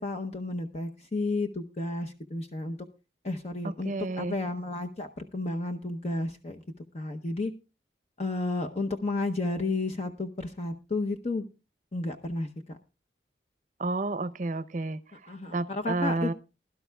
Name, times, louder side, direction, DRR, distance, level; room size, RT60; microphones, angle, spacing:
voice 1, 0.0-2.8 3.2-6.6 6.9-7.5 8.2-11.4 11.9-12.8 15.3-16.3, left 2 dB, 35° left, 0.8 m, -32 dB
voice 2, 3.8-4.4 13.8-16.3, right 2 dB, 45° right, 0.7 m, -31 dB
21.0 x 12.0 x 2.3 m
head